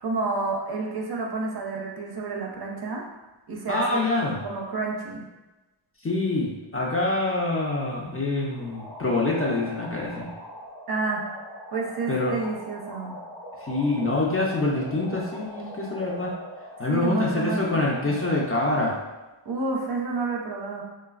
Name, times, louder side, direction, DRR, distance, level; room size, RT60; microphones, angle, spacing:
voice 1, 0.0-3.0 3.5-4.1 4.4-5.3 10.9-11.2 11.7-13.2 16.9-18.2 19.5-20.8, right 3 dB, 55° right, -1 dB, 0.5 m, -30 dB
voice 2, 3.7-4.4 6.0-10.3 12.1-12.3 13.6-16.3 16.8-18.9, left 2 dB, 30° left, -3 dB, 0.4 m, -25 dB
sound 1, 8.5-18.5, equal, 80° left, 0.7 m, -42 dB
3.1 x 2.0 x 2.3 m, 1.1 s
wide cardioid pair, 70°, 48 cm